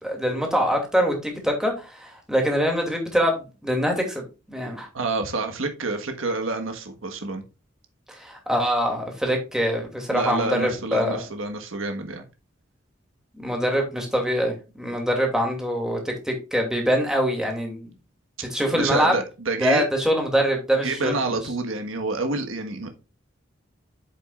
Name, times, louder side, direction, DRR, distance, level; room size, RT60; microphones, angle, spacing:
voice 1, 0.0-4.2 4.5-4.9 8.1-11.2 13.4-17.9 18.5-19.2 19.6-21.4, equal, 5° right, 2.6 m, -24 dB
voice 2, 4.9-7.4 10.1-12.2 18.7-19.9 20.8-22.9, right 3 dB, 90° right, 1.4 m, -28 dB
8.9 x 7.4 x 2.4 m
head